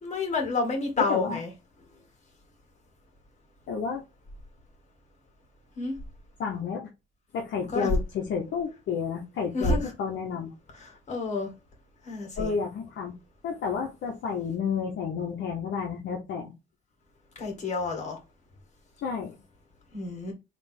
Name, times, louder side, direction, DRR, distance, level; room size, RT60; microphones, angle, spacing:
voice 1, 0.0-1.5 5.8-5.9 7.7-7.9 9.5-9.9 10.8-11.5 12.0-12.5 17.4-18.2 19.9-20.3, left 3 dB, 35° left, 2.0 m, -29 dB
voice 2, 1.0-1.4 3.7-4.0 6.4-6.9 7.3-10.5 12.4-13.1 13.4-16.5 19.0-19.4, left 6 dB, 70° left, 0.8 m, -31 dB
3.5 x 2.9 x 4.3 m
cardioid pair, 90°, 20 cm